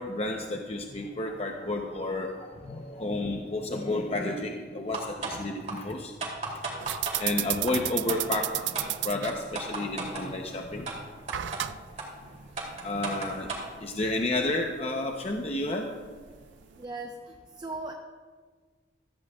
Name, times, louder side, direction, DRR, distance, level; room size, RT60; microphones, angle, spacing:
voice 1, 0.0-6.1 7.2-10.9 11.4-11.5 12.8-13.5 13.8-15.9, left 2 dB, 35° left, 2 dB, 0.7 m, -31 dB
sound 1, 4.9-5.4 5.7-5.8 6.2-7.2 7.7-7.8 8.1-8.4 8.7-8.9 9.3-10.3 10.9-11.0 11.3-11.6 12.0-12.1 12.6-13.7, right 4 dB, 40° right, 2.8 m, -34 dB
sound 2, 6.8-16.8, right 14 dB, 90° right, 0.4 m, -36 dB
voice 2, 16.8-17.9, right 2 dB, 25° right, 2 dB, 0.7 m, -38 dB
15.5 x 14.5 x 2.3 m, 1.5 s
head